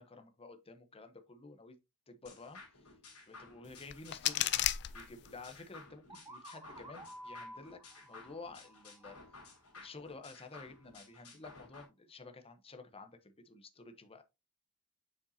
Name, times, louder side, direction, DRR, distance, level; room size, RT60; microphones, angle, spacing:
voice 1, 0.0-1.8 2.1-2.9 3.3-4.5 4.9-9.2 9.8-14.2, left 3 dB, 25° left, 0.9 m, -52 dB
sound 1, 2.2-11.8, left 3 dB, 85° left, 3.1 m, -55 dB
sound 2, 3.6-5.6, left 13 dB, 50° left, 0.4 m, -35 dB
sound 3, 6.1-9.9, right 1 dB, 15° right, 1.0 m, -52 dB
6.9 x 5.2 x 2.8 m
head